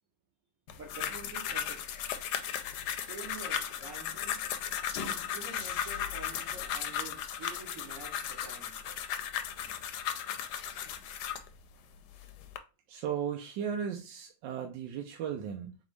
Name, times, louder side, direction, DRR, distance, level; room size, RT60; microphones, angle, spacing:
sound 1, 0.7-11.5 12.1-12.6, left 9 dB, 75° left, 1.1 m, -36 dB
voice 1, 0.8-2.0 3.0-4.4 5.3-8.9, right 3 dB, 55° right, 1.2 m, -47 dB
voice 2, 12.9-15.7, right 8 dB, 90° right, 1.3 m, -36 dB
4.0 x 3.5 x 3.1 m
omnidirectional pair, 1.9 m